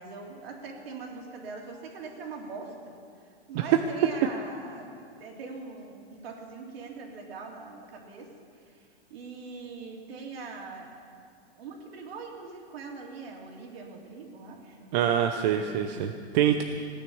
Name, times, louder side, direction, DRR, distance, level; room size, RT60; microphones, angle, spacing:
voice 1, 0.0-3.0 3.5-4.9 5.2-8.3 9.1-10.9 11.6-15.0 15.4-15.8, right 4 dB, 65° right, 0 dB, 3.3 m, -42 dB
voice 2, 14.9-16.6, right 10 dB, 40° right, 5 dB, 0.8 m, -25 dB
17.5 x 9.9 x 7.2 m, 2.3 s
hypercardioid pair, 140°, 32 cm